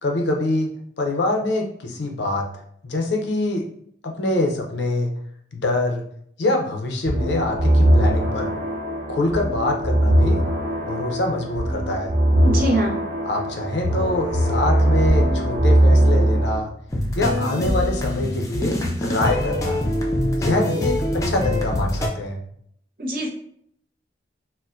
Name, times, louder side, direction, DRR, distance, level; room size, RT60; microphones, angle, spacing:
voice 1, 0.0-2.5 2.8-3.7 4.0-5.1 5.5-6.1 6.4-8.5 9.1-10.4 10.8-12.1 13.2-16.7 17.2-19.8 20.4-22.4, left 2 dB, 70° left, 2 dB, 0.6 m, -24 dB
sound 1, 7.1-16.6, right 1 dB, 15° right, 1.0 m, -20 dB
voice 2, 12.4-13.0 23.0-23.3, right 1 dB, 50° right, -1 dB, 0.8 m, -22 dB
sound 2, 16.9-22.1, left 1 dB, 15° left, 0.4 m, -24 dB
4.2 x 2.1 x 2.5 m, 0.67 s
head